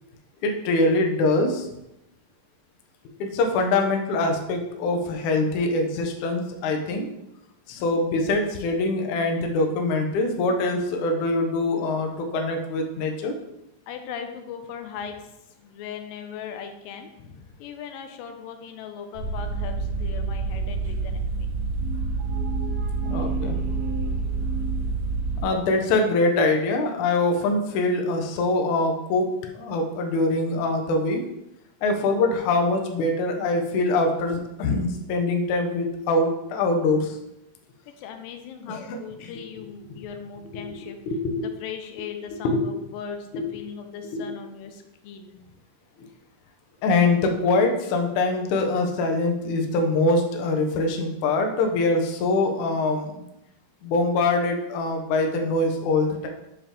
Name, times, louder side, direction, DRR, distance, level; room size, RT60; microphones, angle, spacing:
voice 1, 0.4-1.7 3.2-7.1 7.7-13.3 23.1-23.6 25.4-31.2 31.8-37.2 38.7-39.0 40.5-40.6 41.1-41.5 42.4-42.6 43.3-43.5 44.1-44.3 46.0-46.1 46.8-53.1 53.8-56.3, left 2 dB, 70° left, 3 dB, 2.0 m, -23 dB
voice 2, 13.9-15.3 15.6-17.1 17.6-21.5 37.9-41.0 41.4-45.4, left 7 dB, 90° left, 6 dB, 2.3 m, -38 dB
sound 1, 19.2-25.4, right 3 dB, 60° right, 2.4 m, -28 dB
sound 2, 21.8-25.6, right 2 dB, 80° right, 2.2 m, -36 dB
6.8 x 4.8 x 3.7 m, 0.87 s
omnidirectional pair, 4.0 m